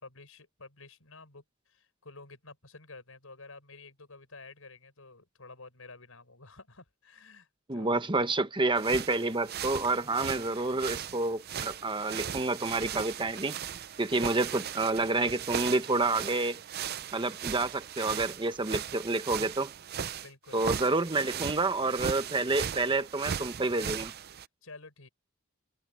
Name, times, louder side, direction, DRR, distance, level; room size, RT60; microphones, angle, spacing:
voice 1, 0.0-8.0 17.0-17.3 20.2-20.7 24.3-25.1, left 3 dB, 75° left, 5.3 m, -51 dB
voice 2, 7.7-13.6 14.0-16.6 17.1-19.7 20.5-24.1, right 3 dB, 25° right, 1.1 m, -29 dB
sound 1, 8.8-24.5, right 8 dB, 50° right, 0.5 m, -38 dB
head